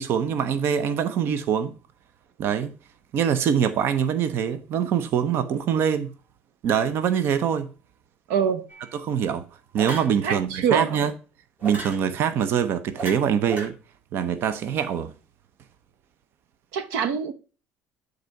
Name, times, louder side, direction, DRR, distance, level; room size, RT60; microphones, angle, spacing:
voice 1, 0.0-1.7 2.4-2.7 3.1-6.1 6.6-7.7 8.9-9.5 9.7-11.1 11.6-13.7 14.1-15.1, right 8 dB, 55° right, 0.8 m, -24 dB
voice 2, 8.3-8.6 10.2-10.9 16.7-17.3, right 7 dB, 90° right, 0.9 m, -24 dB
sound 1, 8.7-8.9 9.8-10.2 11.6-12.0 12.9-13.7, right 3 dB, 35° right, 2.9 m, -34 dB
8.0 x 4.0 x 5.8 m
cardioid pair, 115°, 5 cm